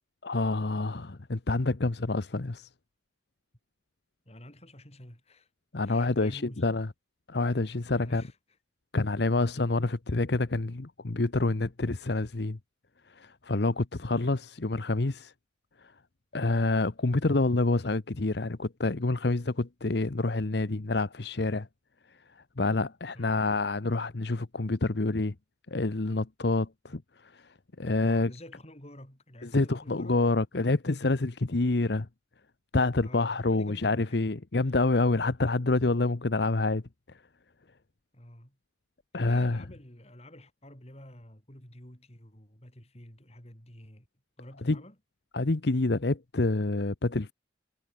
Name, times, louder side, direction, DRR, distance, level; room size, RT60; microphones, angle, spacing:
voice 1, 0.2-2.7 5.7-6.9 7.3-8.2 8.9-12.6 13.1-15.3 15.8-15.9 16.3-21.7 22.6-25.3 25.7-27.4 27.8-28.3 29.4-32.1 32.7-36.8 37.1-37.2 39.1-39.6 44.6-44.8 45.3-47.3, left 2 dB, 60° left, 0.9 m, -27 dB
voice 2, 4.3-5.5 5.9-6.7 8.0-8.4 14.2-14.4 23.1-23.4 28.0-30.2 33.0-34.2 34.7-34.8 38.1-38.6 39.1-44.1 44.4-45.0, left 1 dB, 35° left, 5.5 m, -49 dB
head